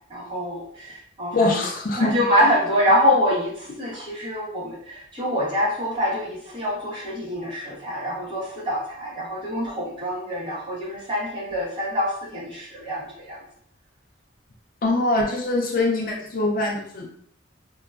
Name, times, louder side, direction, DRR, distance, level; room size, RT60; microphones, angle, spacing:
voice 1, 0.1-1.6 2.0-13.4, equal, 25° right, -8 dB, 1.1 m, -25 dB
voice 2, 1.3-2.3 14.8-17.1, left 2 dB, 45° left, 0 dB, 0.4 m, -23 dB
3.8 x 2.2 x 2.3 m, 0.65 s
head